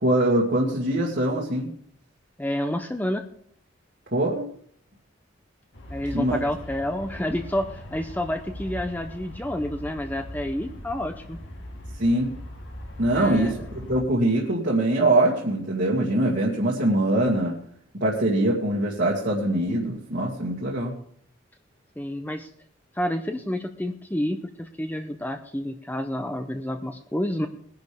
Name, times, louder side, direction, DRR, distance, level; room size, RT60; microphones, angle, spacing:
voice 1, 0.0-1.7 4.1-4.4 6.1-6.4 12.0-12.3 13.0-13.5 13.8-17.6 17.9-20.9, right 1 dB, 60° right, -4 dB, 2.1 m, -23 dB
voice 2, 2.4-3.2 5.9-11.4 13.1-13.6 22.0-22.5 22.9-27.5, left 1 dB, 10° left, 6 dB, 0.6 m, -29 dB
Aircraft, 5.7-14.0, left 1 dB, 60° left, 2.1 m, -40 dB
20.0 x 10.5 x 3.5 m, 0.62 s
head